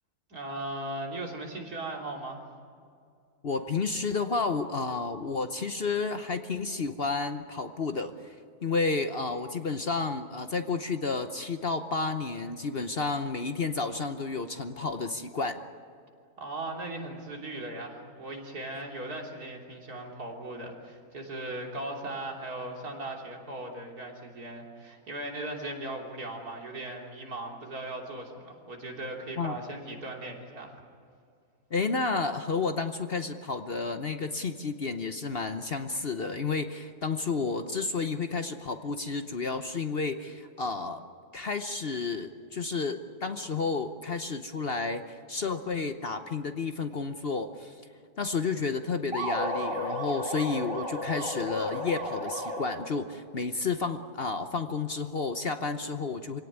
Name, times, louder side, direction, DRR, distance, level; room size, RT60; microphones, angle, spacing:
voice 1, 0.3-2.4 16.4-30.8, right 2 dB, 75° right, 0 dB, 3.8 m, -38 dB
voice 2, 3.4-8.3 8.6-15.6 29.4-29.6 31.7-41.1 41.3-47.7 48.2-56.4, left 4 dB, 45° left, 8 dB, 1.0 m, -31 dB
sound 1, 49.1-53.0, equal, 20° right, 3.2 m, -33 dB
26.0 x 17.5 x 9.5 m, 2.3 s
omnidirectional pair, 1.6 m